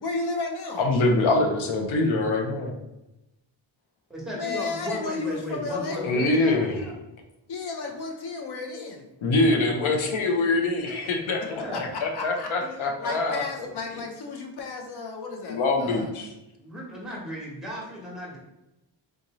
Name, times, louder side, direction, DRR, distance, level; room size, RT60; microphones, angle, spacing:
voice 1, 0.0-0.8 4.3-6.0 7.5-9.1 11.6-11.8 12.1-16.1, left 4 dB, 55° left, 2 dB, 0.7 m, -33 dB
voice 2, 0.8-2.7 6.0-6.7 9.2-11.6 12.0-13.4 15.5-16.3, left 2 dB, 85° left, 2 dB, 0.8 m, -24 dB
voice 3, 4.1-7.0 11.4-11.9 15.8-16.1 16.6-18.4, equal, ahead, -4 dB, 1.0 m, -35 dB
3.7 x 2.6 x 3.0 m, 0.93 s
wide cardioid pair, 145°, 47 cm